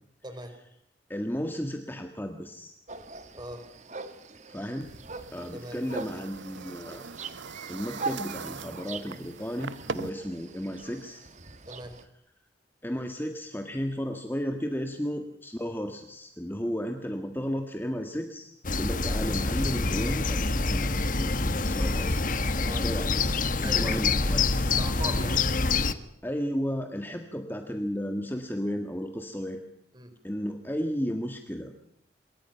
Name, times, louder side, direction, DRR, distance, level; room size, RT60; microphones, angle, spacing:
voice 1, 1.1-2.7 4.5-4.9 5.3-7.1 7.7-11.2 12.8-24.6 26.2-29.6 30.2-31.7, equal, 10° left, 5 dB, 1.8 m, -34 dB
sound 1, 2.9-12.1, right 4 dB, 40° right, 1.8 m, -42 dB
sound 2, 4.8-10.1, right 4 dB, 90° right, 0.9 m, -41 dB
sound 3, 18.6-25.9, left 3 dB, 45° left, 1.3 m, -26 dB
voice 2, 23.6-24.1 24.8-25.4 29.9-30.1, right 1 dB, 25° right, 7 dB, 4.4 m, -39 dB
27.0 x 23.0 x 5.8 m, 0.76 s
head